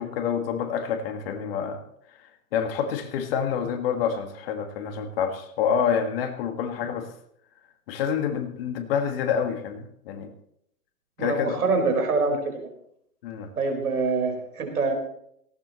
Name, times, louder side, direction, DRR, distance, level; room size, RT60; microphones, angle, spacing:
voice 1, 0.0-1.8 2.5-7.1 7.9-10.3 11.2-11.6 13.2-13.5, left 7 dB, 40° left, 6 dB, 1.8 m, -27 dB
voice 2, 11.2-12.7 13.6-14.9, right 4 dB, 70° right, 4 dB, 4.7 m, -25 dB
18.5 x 17.0 x 3.1 m, 0.72 s
hypercardioid pair, 130°, 46 cm